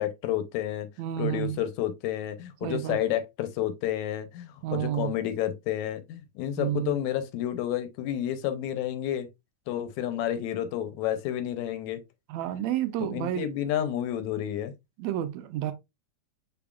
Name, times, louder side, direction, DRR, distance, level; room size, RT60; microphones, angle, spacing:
voice 1, 0.0-0.9 1.2-9.3 9.7-12.0 13.0-14.7, left 11 dB, 85° left, 2.0 m, -30 dB
voice 2, 1.0-1.6 2.6-3.0 4.6-5.1 6.6-7.0 12.3-13.5 15.0-15.7, right 12 dB, 80° right, 1.9 m, -30 dB
6.0 x 3.4 x 2.3 m
omnidirectional pair, 3.3 m